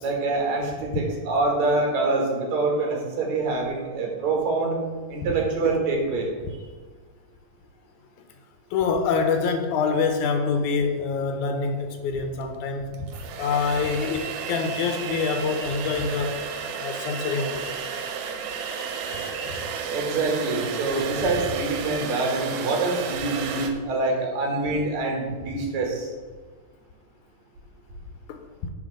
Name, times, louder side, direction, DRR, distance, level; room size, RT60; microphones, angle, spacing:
voice 1, 0.0-4.8 5.1-6.3 19.9-26.1, right 3 dB, 65° right, 0 dB, 2.7 m, -25 dB
voice 2, 8.7-16.4 16.8-17.7 28.3-28.7, left 5 dB, 80° left, 6 dB, 2.1 m, -26 dB
sound 1, 12.4-12.5 12.9-23.7, right 6 dB, 90° right, 2.4 m, -32 dB
8.9 x 4.1 x 6.4 m, 1.4 s
omnidirectional pair, 3.6 m